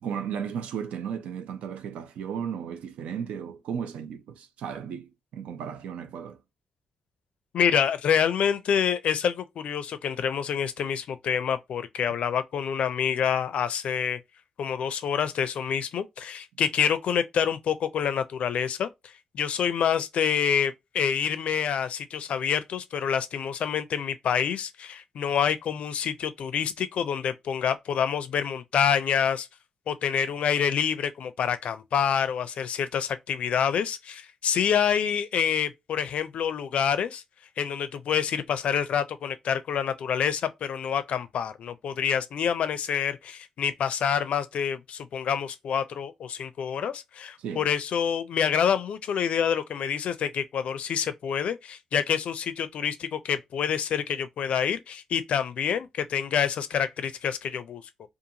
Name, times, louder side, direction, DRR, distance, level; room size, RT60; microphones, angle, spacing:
voice 1, 0.0-6.4 47.4-47.7, right 7 dB, 80° right, 0.4 m, -35 dB
voice 2, 7.5-14.2 14.6-18.9 19.3-29.5 29.9-37.2 37.6-57.8, left 8 dB, 70° left, 0.4 m, -27 dB
2.5 x 2.4 x 2.8 m
supercardioid pair, 60°, 2 cm